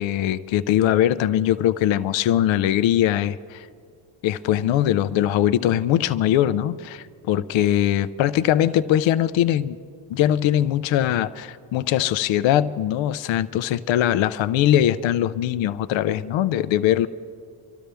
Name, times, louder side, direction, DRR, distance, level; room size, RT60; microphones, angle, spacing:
voice 1, 0.0-3.7 4.2-9.8 10.1-17.1, left 11 dB, 65° left, 13 dB, 0.6 m, -21 dB
26.0 x 12.5 x 3.4 m, 2.1 s
cardioid pair, 105°, 49 cm